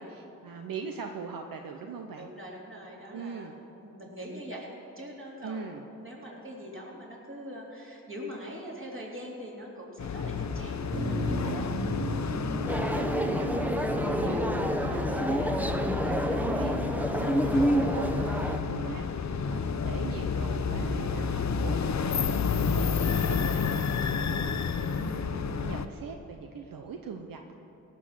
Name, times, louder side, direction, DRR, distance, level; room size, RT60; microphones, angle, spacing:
voice 1, 0.0-2.3 3.1-3.6 5.4-5.8 12.9-24.7 25.0-27.5, right 6 dB, 80° right, 4 dB, 0.8 m, -41 dB
voice 2, 2.2-4.7 5.0-10.8 11.1-11.7 19.3-19.8, equal, 40° right, -3 dB, 3.7 m, -43 dB
sound 1, 10.0-25.9, left 5 dB, 55° left, 0.7 m, -30 dB
Motor vehicle (road), 10.9-19.9, right 1 dB, 65° right, 3.9 m, -38 dB
sound 2, 12.7-18.6, equal, 5° right, 1.0 m, -28 dB
17.5 x 6.2 x 7.6 m, 2.9 s
cardioid pair, 45°, 33 cm